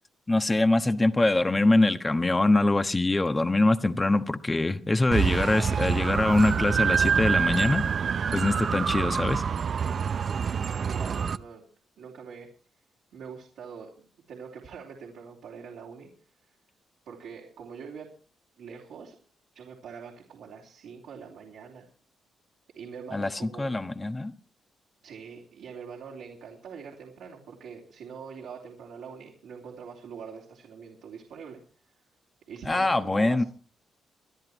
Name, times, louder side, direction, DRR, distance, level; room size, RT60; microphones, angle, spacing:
voice 1, 0.3-7.8 8.3-9.4 23.1-24.3 32.7-33.4, left 2 dB, 25° left, 1.3 m, -23 dB
sound 1, 5.1-11.4, right 6 dB, 55° right, 0.6 m, -26 dB
voice 2, 10.8-11.6 12.0-12.5 13.1-13.9 14.3-16.1 17.1-18.1 18.6-19.1 19.5-21.9 22.8-23.8 25.0-31.6 32.5-33.4, right 6 dB, 75° right, 3.2 m, -43 dB
25.5 x 10.5 x 3.1 m
supercardioid pair, 55°, 0 cm